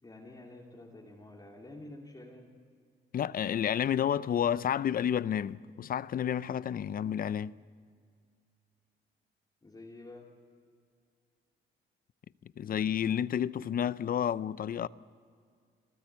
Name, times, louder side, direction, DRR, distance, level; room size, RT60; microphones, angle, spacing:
voice 1, 0.0-2.6 9.6-10.4, left 2 dB, 20° left, 2.5 m, -49 dB
voice 2, 3.1-7.5 12.6-14.9, left 9 dB, 45° left, 0.5 m, -30 dB
27.0 x 13.0 x 8.1 m
cardioid pair, 90°, 20 cm